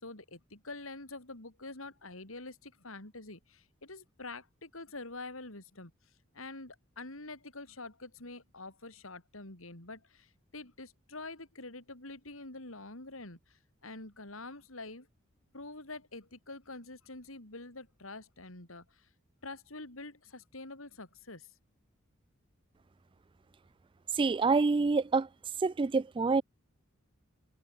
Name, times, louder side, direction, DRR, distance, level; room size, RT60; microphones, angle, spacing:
voice 1, 0.0-5.9 6.3-15.1 15.5-19.1 19.4-21.5, left 2 dB, 80° left, 5.2 m, -46 dB
voice 2, 24.2-25.3 25.6-26.4, right 4 dB, 25° right, 0.3 m, -27 dB
head